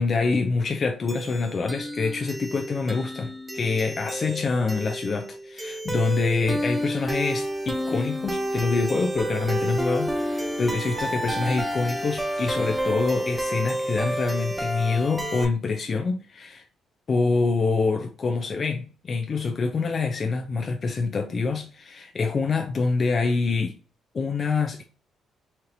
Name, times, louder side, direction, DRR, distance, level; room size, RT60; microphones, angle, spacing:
voice 1, 0.0-16.6 17.1-23.8 24.1-24.8, left 4 dB, 45° left, 0.5 m, -26 dB
sound 1, 1.1-15.5, right 1 dB, 15° right, 0.6 m, -30 dB
4.3 x 3.2 x 2.6 m
cardioid pair, 90°, 0 cm